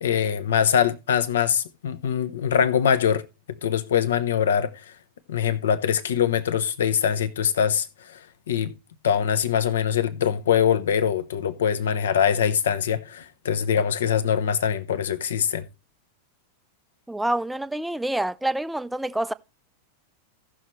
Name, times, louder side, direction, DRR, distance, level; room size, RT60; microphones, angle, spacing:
voice 1, 0.0-3.2 3.6-4.8 5.3-8.2 8.5-8.7 9.0-15.6, left 8 dB, 65° left, 0.9 m, -23 dB
voice 2, 17.1-19.3, right 1 dB, 5° right, 0.5 m, -27 dB
16.5 x 6.4 x 3.1 m
figure-of-eight pair, 90°, 0 cm